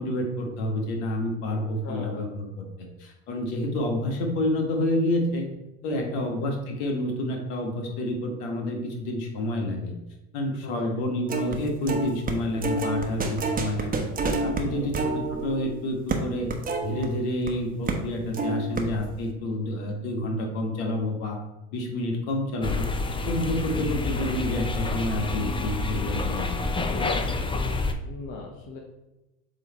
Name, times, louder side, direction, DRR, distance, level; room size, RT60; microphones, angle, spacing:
voice 1, 0.0-5.5 5.8-9.9 10.3-14.0 14.4-16.5 16.8-21.4 21.7-22.9 23.2-26.5 26.8-26.9, left 1 dB, 75° left, 2 dB, 1.6 m, -29 dB
voice 2, 1.5-2.3 5.9-6.4 10.6-10.9 14.6-15.1 26.9-27.7 28.0-28.8, left 4 dB, 55° left, -1 dB, 1.2 m, -39 dB
sound 1, 11.3-11.6 11.9-17.5 17.9-18.1 18.3-19.2, right 3 dB, 25° right, 1.1 m, -29 dB
sound 2, 22.6-27.9, left 3 dB, 15° left, 0.7 m, -28 dB
7.5 x 3.3 x 4.2 m, 0.98 s
hypercardioid pair, 85°, 33 cm